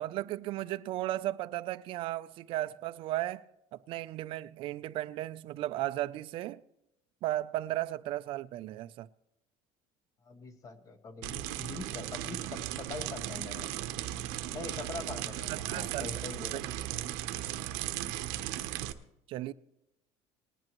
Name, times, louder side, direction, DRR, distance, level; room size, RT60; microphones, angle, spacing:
voice 1, 0.0-3.5 3.7-6.6 7.2-9.1 15.5-16.1 16.5-16.8 19.3-19.5, right 15 dB, 50° right, 0.4 m, -35 dB
voice 2, 10.2-13.7 14.5-16.7, left 4 dB, 30° left, 0.9 m, -43 dB
sound 1, 11.2-18.9, right 13 dB, 85° right, 0.8 m, -37 dB
19.5 x 10.5 x 3.0 m
cardioid pair, 165°, 12 cm